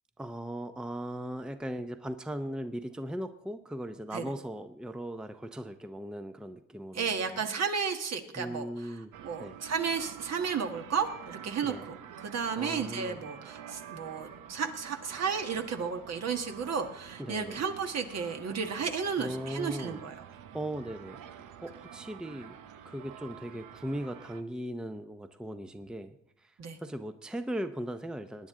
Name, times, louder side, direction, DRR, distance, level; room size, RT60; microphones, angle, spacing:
voice 1, 0.2-7.4 8.4-9.1 9.4-9.6 11.6-11.8 12.5-13.3 17.2-17.6 19.2-22.5 22.8-28.5, right 1 dB, 5° right, 9 dB, 0.6 m, -38 dB
voice 2, 6.9-8.7 9.2-11.7 12.2-20.1 26.6-26.8, right 6 dB, 60° right, 5 dB, 1.6 m, -33 dB
sound 1, 9.1-24.4, right 9 dB, 85° right, 0.9 m, -48 dB
19.5 x 9.6 x 3.7 m, 0.71 s
cardioid pair, 90°, 30 cm